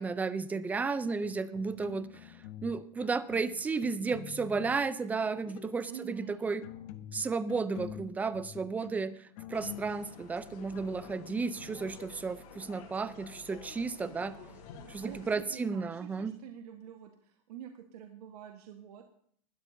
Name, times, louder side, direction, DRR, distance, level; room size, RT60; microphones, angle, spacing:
voice 1, 0.0-2.4 2.6-6.6 7.1-14.3 14.9-16.3, right 4 dB, 10° right, 14 dB, 0.4 m, -33 dB
sound 1, 1.2-2.7 3.0-4.8 5.3-5.8 6.3-11.9, left 11 dB, 50° left, 0.9 m, -47 dB
voice 2, 5.9-6.4 14.0-14.6 15.0-19.0, right 9 dB, 80° right, 4 dB, 1.3 m, -47 dB
sound 2, 9.5-15.4, left 5 dB, 75° left, 3.9 m, -51 dB
19.5 x 12.5 x 2.7 m, 0.62 s
supercardioid pair, 155°, 20 cm